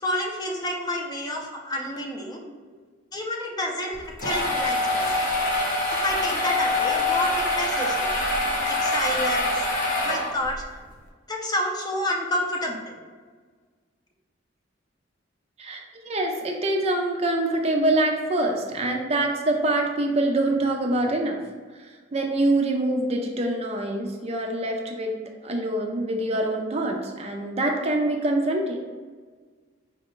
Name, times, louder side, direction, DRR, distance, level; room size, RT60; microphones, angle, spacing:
voice 1, 0.0-2.4 3.1-5.1 5.9-8.1 8.6-9.6 10.0-10.6 11.3-13.0, left 1 dB, 20° left, 0 dB, 0.6 m, -29 dB
sound 1, 3.9-10.6, left 2 dB, 45° left, 0.9 m, -25 dB
voice 2, 15.6-21.4 21.8-25.1 25.4-28.8, right 1 dB, 35° right, 2 dB, 0.4 m, -25 dB
4.7 x 2.5 x 3.6 m, 1.5 s
head